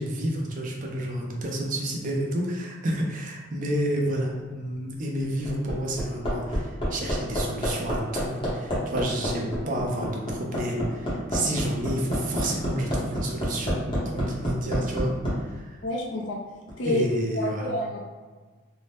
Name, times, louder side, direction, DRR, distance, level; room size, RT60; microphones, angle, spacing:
voice 1, 0.0-15.1 15.4-15.8 16.9-17.7, right 1 dB, 40° right, -1 dB, 0.4 m, -30 dB
Hammer, 5.4-15.3 16.7-16.8, equal, 25° left, 0.7 m, -28 dB
voice 2, 15.8-16.4 16.8-17.0 17.3-18.0, equal, 60° left, -2 dB, 0.5 m, -28 dB
2.7 x 2.1 x 3.3 m, 1.4 s
head